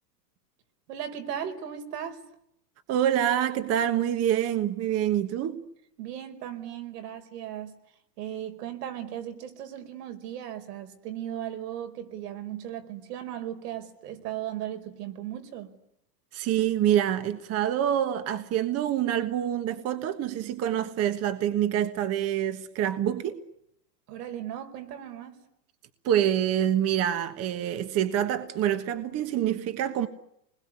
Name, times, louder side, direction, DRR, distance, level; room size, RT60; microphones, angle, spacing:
voice 1, 0.9-2.2 6.0-7.7 8.2-15.7 24.1-25.4, right 10 dB, 70° right, 4.7 m, -37 dB
voice 2, 2.9-5.6 16.3-23.4 26.0-30.1, right 10 dB, 30° right, 1.4 m, -26 dB
28.5 x 21.0 x 9.8 m
supercardioid pair, 150°, 49 cm